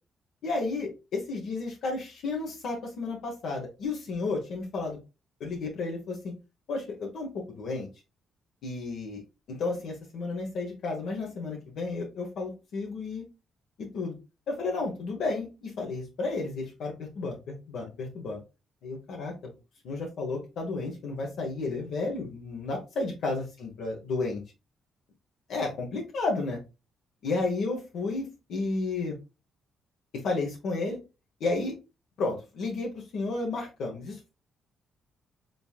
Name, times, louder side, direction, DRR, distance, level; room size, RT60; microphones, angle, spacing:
voice 1, 0.4-5.0 5.4-6.2 6.7-7.9 8.6-9.2 9.5-13.2 13.8-14.2 14.5-17.3 17.7-18.4 18.8-19.5 19.8-24.4 25.5-26.6 27.2-29.2 30.2-31.0 31.4-31.7 32.2-34.3, left 3 dB, 70° left, 0 dB, 1.1 m, -32 dB
3.9 x 3.6 x 2.4 m, 0.27 s
cardioid pair, 90°, 0 cm